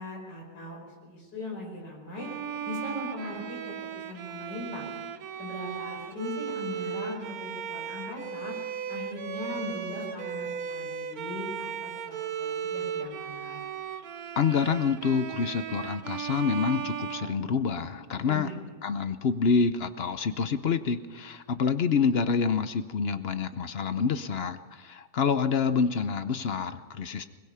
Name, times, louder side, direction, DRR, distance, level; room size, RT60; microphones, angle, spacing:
voice 1, 0.0-2.3 2.7-3.6 3.9-4.9 5.4-8.5 8.9-13.6 18.2-18.6, left 2 dB, 80° left, 0 dB, 5.7 m, -39 dB
Bowed string instrument, 2.2-18.0, right 8 dB, 65° right, 1.3 m, -36 dB
voice 2, 14.4-18.5 18.8-27.2, left 6 dB, 50° left, 11 dB, 0.7 m, -27 dB
21.5 x 21.0 x 5.7 m, 1.4 s
omnidirectional pair, 1.8 m